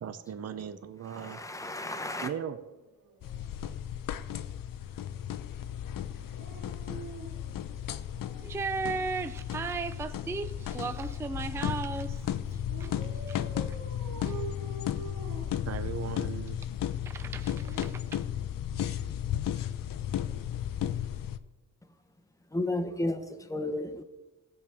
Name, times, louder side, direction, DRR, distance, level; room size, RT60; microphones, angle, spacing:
voice 1, 0.0-1.4 2.2-2.6 15.7-16.6, right 8 dB, 50° right, 0.6 m, -37 dB
voice 2, 1.1-2.3 22.5-24.0, left 2 dB, 10° left, 0.9 m, -33 dB
Dog, 1.9-3.8 6.2-8.6 9.9-11.5 12.7-16.2 17.2-18.9 20.1-20.3, right 4 dB, 75° right, 2.3 m, -47 dB
sound 1, 3.2-21.4, left 10 dB, 75° left, 0.6 m, -34 dB
voice 3, 8.4-13.0 13.3-13.4 14.2-14.4 17.1-18.2, right 4 dB, 10° right, 0.3 m, -36 dB
16.0 x 6.9 x 3.5 m
wide cardioid pair, 125°, 34 cm